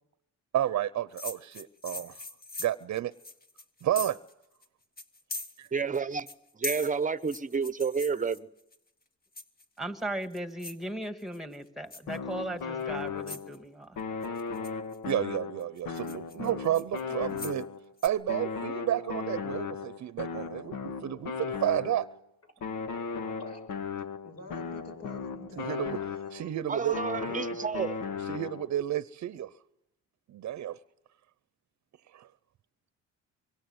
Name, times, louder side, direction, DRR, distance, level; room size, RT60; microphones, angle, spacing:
voice 1, 0.5-2.2 2.6-3.1 3.8-4.2 5.6-5.7 15.1-17.7 18.0-22.1 25.6-26.0 26.3-27.0 28.3-29.5 30.3-30.8 32.1-32.3, right 12 dB, 65° right, 0.9 m, -31 dB
sound 1, 1.2-4.3 4.6-4.7 5.0-6.0 6.3-8.8 9.4-9.8 10.2-10.8 11.2-11.6 11.9-12.2 12.8-12.9 13.3-13.6 14.2-15.1 15.6-17.6 18.0-18.1, left 2 dB, 30° left, 1.8 m, -41 dB
voice 2, 5.7-6.3 6.5-8.5 26.7-28.0, right 5 dB, 25° right, 1.0 m, -30 dB
voice 3, 9.8-14.0, right 1 dB, ahead, 1.9 m, -37 dB
sound 2, 12.1-13.6 14.0-17.9 18.3-22.2 22.6-26.6 26.9-28.8, left 5 dB, 80° left, 1.8 m, -36 dB
voice 4, 23.9-26.0 26.3-26.5, left 3 dB, 55° left, 7.9 m, -49 dB
25.0 x 23.0 x 8.0 m
cardioid pair, 90°, 30 cm